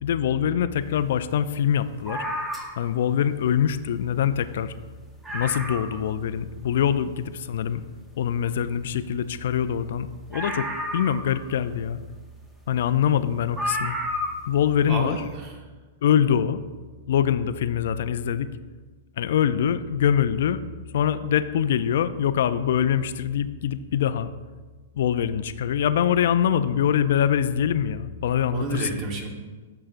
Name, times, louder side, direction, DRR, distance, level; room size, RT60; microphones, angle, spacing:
voice 1, 0.0-2.2 2.8-4.7 5.3-7.8 8.2-12.0 12.7-13.9 14.5-15.2 16.0-16.6 17.1-18.5 19.2-20.6 20.9-24.3 24.9-28.9, left 9 dB, 70° left, 13 dB, 0.3 m, -24 dB
sound 1, 2.1-3.0 4.1-4.2 4.5-4.6 4.9-5.0 5.2-6.1 6.6-6.7 10.3-11.6 12.8-12.9 13.6-14.5 14.8-14.9, equal, 10° right, 0.8 m, -31 dB
voice 2, 14.9-15.6 28.5-29.3, right 2 dB, 40° right, 2 dB, 1.1 m, -30 dB
8.8 x 5.7 x 2.5 m, 1.4 s
hypercardioid pair, 135°, 0 cm